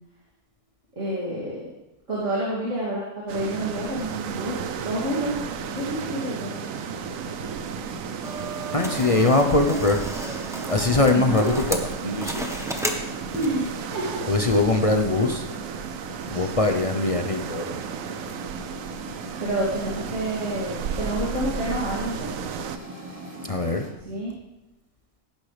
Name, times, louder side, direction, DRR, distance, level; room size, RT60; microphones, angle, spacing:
voice 1, 1.0-1.6 2.1-5.4 5.7-6.5 11.1-11.6 13.3-14.2 15.1-15.3 19.4-22.7 24.0-24.3, right 1 dB, 50° right, -6 dB, 2.9 m, -29 dB
sound 1, 3.3-22.8, right 8 dB, 70° right, 1.0 m, -34 dB
sound 2, 3.9-23.9, right 1 dB, 25° right, 1.5 m, -40 dB
sound 3, 8.2-13.7, right 1 dB, ahead, 0.9 m, -34 dB
voice 2, 8.7-10.0 10.7-12.5 14.3-15.4 16.3-17.8 23.5-23.9, left 2 dB, 35° left, 5 dB, 0.5 m, -22 dB
17.5 x 10.5 x 3.3 m, 0.98 s
omnidirectional pair, 1.6 m